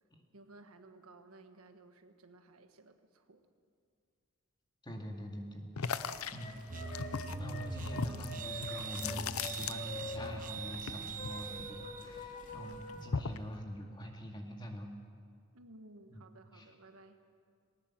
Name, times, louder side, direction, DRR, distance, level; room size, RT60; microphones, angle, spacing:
voice 1, 0.3-3.4 15.5-17.2, right 2 dB, 90° right, 7 dB, 1.3 m, -57 dB
voice 2, 4.8-6.6 7.4-14.9 16.1-16.2 16.5-16.7, equal, 20° left, 1 dB, 2.2 m, -44 dB
sound 1, 5.8-10.3 10.5-12.2 12.5-13.5, left 6 dB, 85° left, 0.7 m, -39 dB
sound 2, 6.0-13.1, left 2 dB, 35° left, 2.3 m, -46 dB
sound 3, 6.7-12.0, right 5 dB, 40° right, 0.8 m, -43 dB
19.0 x 18.5 x 7.4 m, 2.2 s
head